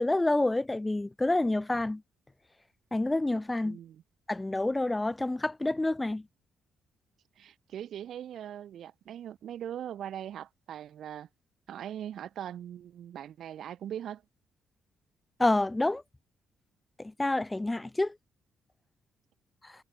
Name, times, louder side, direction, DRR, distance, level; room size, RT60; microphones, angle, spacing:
voice 1, 0.0-2.0 2.9-3.8 4.3-6.3 15.4-16.0 17.0-18.2 19.6-19.7, left 2 dB, 15° left, 2.6 m, -28 dB
voice 2, 3.6-4.0 7.4-11.3 11.7-14.2, right 10 dB, 70° right, 3.6 m, -40 dB
cardioid pair, 90°, 0 cm